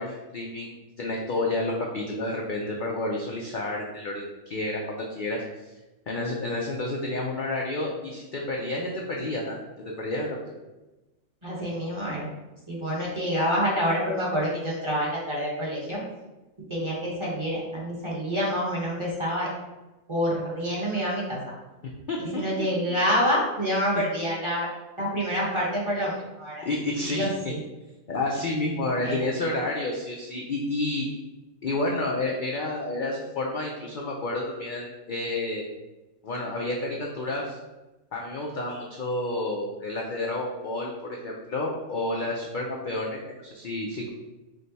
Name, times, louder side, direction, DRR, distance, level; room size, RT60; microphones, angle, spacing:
voice 1, 0.0-5.4 6.1-10.4 22.1-22.7 26.6-27.5 28.1-31.1 31.6-35.6 36.2-37.6 38.1-44.1, left 2 dB, 55° left, -2 dB, 0.5 m, -30 dB
voice 2, 11.4-12.3 12.7-16.0 16.7-19.5 20.1-21.4 22.2-24.7 25.0-26.7 27.0-27.6 29.0-29.3, equal, 25° right, -5 dB, 1.1 m, -27 dB
4.8 x 2.2 x 4.0 m, 1.1 s
omnidirectional pair, 1.4 m